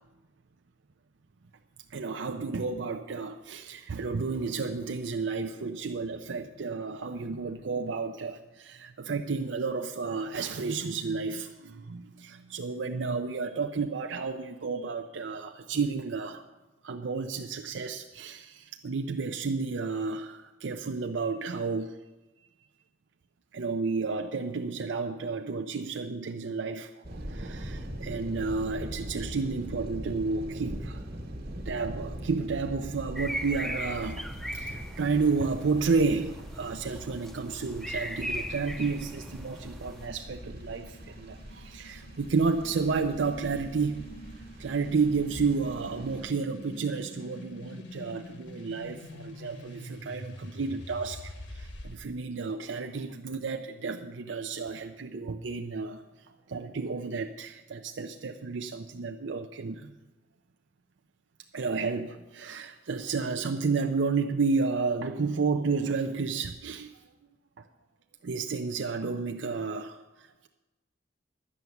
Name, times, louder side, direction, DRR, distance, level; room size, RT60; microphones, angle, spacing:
voice 1, 1.9-16.4 16.8-22.0 23.5-31.0 31.7-44.1 44.6-56.0 56.5-59.9 61.5-67.0 67.6-67.7 68.2-70.5, right 4 dB, 75° right, 5 dB, 0.5 m, -31 dB
sound 1, 27.0-46.3, equal, 55° right, 1.5 m, -41 dB
sound 2, 33.2-40.1, equal, ahead, 0.6 m, -39 dB
sound 3, 34.2-52.0, equal, 65° left, 1.5 m, -47 dB
11.0 x 7.0 x 9.2 m, 1.1 s
head